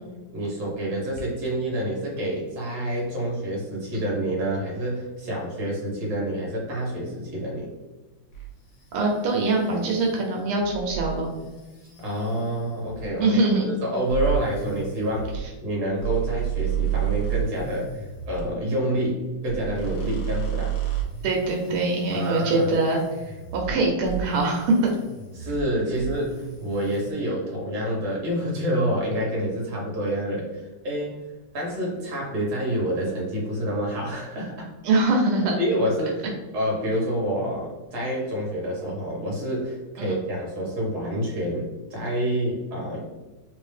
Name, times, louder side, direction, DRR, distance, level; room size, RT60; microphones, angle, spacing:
voice 1, 0.3-7.7 12.0-20.8 22.1-22.7 25.3-31.2 31.5-34.7 35.6-36.2 36.5-43.1, equal, 55° right, -2 dB, 1.5 m, -28 dB
sound 1, 8.3-13.2 14.1-18.5 19.4-23.8 24.0-25.7 26.0-27.1, right 9 dB, 60° left, 1.5 m, -32 dB
voice 2, 8.9-11.3 13.2-13.7 21.2-23.0 23.2-24.9 34.8-35.6 40.0-40.2, right 2 dB, 85° right, 0 dB, 1.5 m, -23 dB
3.6 x 2.7 x 3.2 m, 1.2 s
omnidirectional pair, 2.3 m